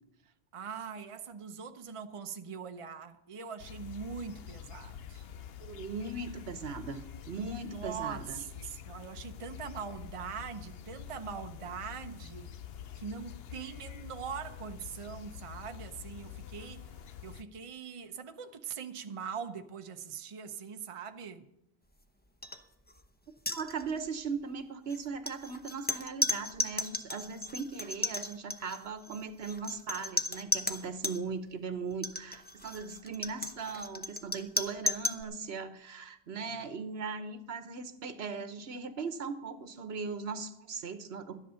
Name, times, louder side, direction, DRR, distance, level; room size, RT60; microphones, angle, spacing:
voice 1, 0.2-5.3 7.4-12.5 13.0-16.9 17.2-21.5 36.3-36.5, right 6 dB, 35° right, 0.7 m, -42 dB
sound 1, 3.6-17.4, left 9 dB, 70° left, 0.8 m, -47 dB
voice 2, 5.6-8.4 23.5-41.4, right 5 dB, 70° right, 1.2 m, -39 dB
sound 2, 22.4-22.6 22.9-23.1 23.4-24.1 24.9-31.2 31.9-35.2, left 1 dB, 10° left, 0.7 m, -35 dB
12.5 x 10.5 x 5.6 m
omnidirectional pair, 1.1 m